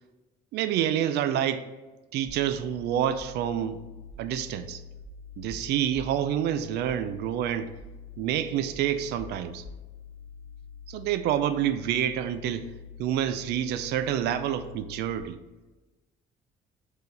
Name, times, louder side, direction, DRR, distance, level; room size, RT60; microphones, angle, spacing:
voice 1, 0.5-1.7 2.1-3.8 4.2-4.8 5.4-7.7 8.2-9.6 10.9-12.7 13.0-15.4, right 10 dB, 80° right, 11 dB, 0.5 m, -28 dB
sound 1, 2.3-15.2, left 6 dB, 75° left, 1.8 m, -45 dB
4.9 x 4.7 x 4.0 m, 1.2 s
cardioid pair, 110°, 17 cm